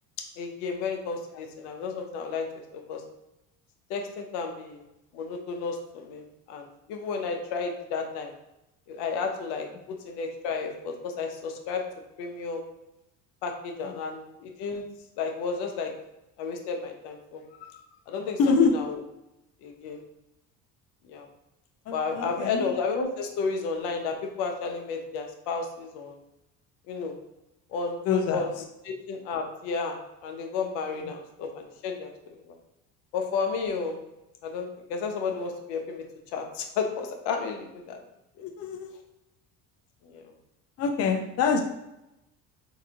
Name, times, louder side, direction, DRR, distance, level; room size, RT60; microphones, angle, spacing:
voice 1, 0.4-2.5 2.7-3.0 3.9-4.9 5.1-8.3 8.9-11.9 12.2-12.6 13.4-14.8 15.2-15.9 16.4-17.8 18.1-19.0 19.6-20.0 21.1-21.3 21.9-26.2 26.9-27.2 27.7-28.5 28.8-32.5 33.1-34.0 34.4-36.0 36.3-38.0 40.0-40.3, left 5 dB, 80° left, 3 dB, 0.8 m, -32 dB
voice 2, 18.4-18.7 21.9-22.7 28.1-28.5 38.4-38.9 40.8-41.6, left 5 dB, 40° left, 3 dB, 0.5 m, -25 dB
3.9 x 2.6 x 2.8 m, 0.90 s
cardioid pair, 110°, 41 cm